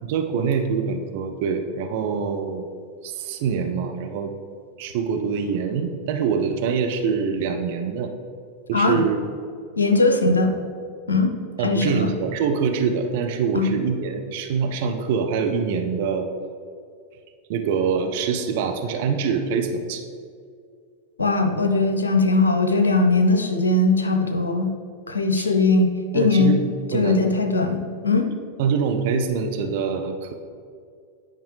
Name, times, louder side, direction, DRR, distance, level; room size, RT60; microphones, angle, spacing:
voice 1, 0.0-2.7 3.0-4.3 4.8-8.1 8.7-9.2 11.6-16.3 17.5-20.0 25.3-25.5 26.1-26.6 26.9-27.3 28.6-30.3, right 6 dB, 50° right, 5 dB, 0.6 m, -24 dB
voice 2, 8.7-9.1 9.8-10.5 11.1-11.3 11.6-12.1 13.5-13.7 21.2-24.7 25.1-26.5 26.9-28.3, left 3 dB, 75° left, 5 dB, 0.7 m, -20 dB
9.7 x 5.1 x 3.3 m, 2.2 s
figure-of-eight pair, 90°, 0 cm